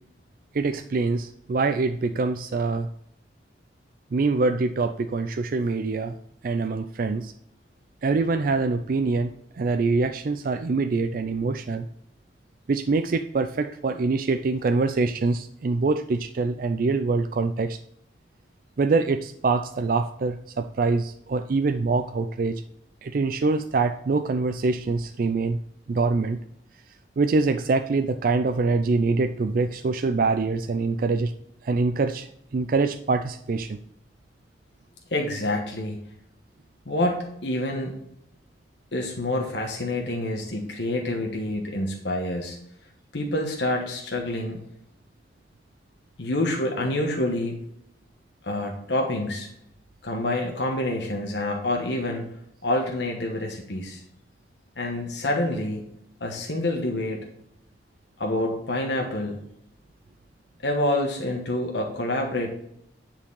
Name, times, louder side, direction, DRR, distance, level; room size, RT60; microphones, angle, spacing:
voice 1, 0.5-2.9 4.1-6.1 6.4-7.3 8.0-9.3 9.6-11.9 12.7-17.8 18.8-22.6 23.0-25.6 25.9-26.4 27.2-31.3 31.6-33.8, right 3 dB, 50° right, 8 dB, 0.4 m, -24 dB
voice 2, 35.1-36.1 36.9-38.0 38.9-42.6 43.1-44.6 46.2-47.6 48.4-49.5 50.0-52.3 52.6-54.0 54.8-55.9 56.2-57.2 58.2-59.4 60.6-62.5, left 1 dB, 80° left, 1 dB, 1.2 m, -27 dB
9.7 x 4.5 x 5.5 m, 0.75 s
head